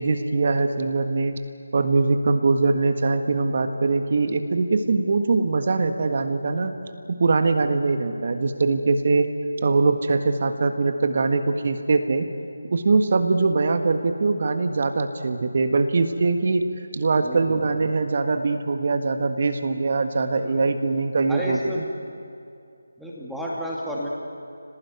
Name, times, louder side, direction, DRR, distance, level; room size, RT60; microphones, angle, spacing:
voice 1, 0.0-1.4 1.7-6.7 7.1-9.3 9.6-12.3 12.7-16.7 16.9-21.8, right 3 dB, 45° right, 7 dB, 1.7 m, -22 dB
voice 2, 17.2-17.6 20.4-20.6 21.3-21.8 23.0-24.1, equal, ahead, -6 dB, 2.6 m, -32 dB
28.0 x 19.0 x 9.6 m, 2.5 s
figure-of-eight pair, 160°, 0 cm